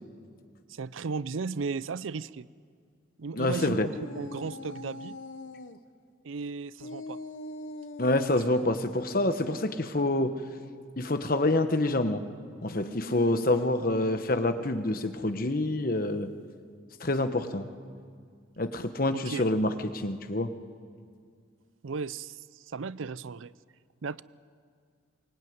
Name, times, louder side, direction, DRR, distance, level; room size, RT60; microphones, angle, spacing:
voice 1, 0.7-2.5 3.2-5.2 6.2-7.2 8.6-8.7 19.1-19.4 21.8-23.5 24.0-24.2, right 4 dB, 85° right, 18 dB, 0.5 m, -35 dB
voice 2, 3.3-3.9 8.0-10.4 11.0-12.2 12.6-16.3 17.0-17.7 18.6-20.5, left 2 dB, 45° left, 9 dB, 1.2 m, -27 dB
sound 1, 3.8-5.8 6.8-8.7 12.6-14.8, left 2 dB, 80° left, 1.0 m, -43 dB
23.5 x 19.5 x 9.5 m, 2.1 s
head